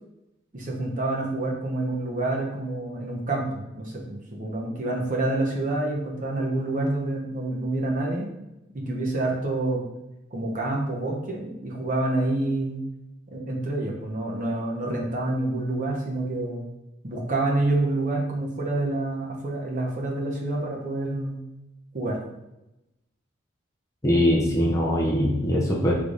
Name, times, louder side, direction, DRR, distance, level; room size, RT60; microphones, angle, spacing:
voice 1, 0.5-8.3 8.7-9.8 10.3-12.8 13.3-16.7 17.0-21.4 21.9-22.2, right 2 dB, 45° right, -2 dB, 0.8 m, -27 dB
voice 2, 24.0-25.9, equal, 15° left, -2 dB, 0.6 m, -22 dB
3.3 x 3.3 x 3.8 m, 0.93 s
head